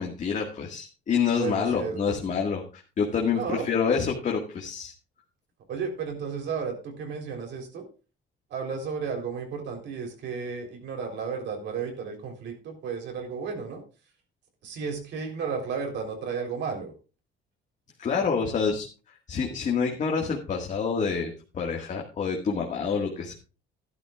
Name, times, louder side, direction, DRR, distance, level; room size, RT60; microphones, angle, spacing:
voice 1, 0.0-2.6 3.0-4.9 18.0-18.9 19.3-23.4, left 6 dB, 40° left, 0 dB, 1.8 m, -27 dB
voice 2, 1.3-2.2 3.3-3.7 5.7-7.8 8.5-13.8 14.6-16.9, right 5 dB, 65° right, 3 dB, 3.7 m, -33 dB
14.0 x 12.0 x 2.4 m, 0.33 s
cardioid pair, 160°, 20 cm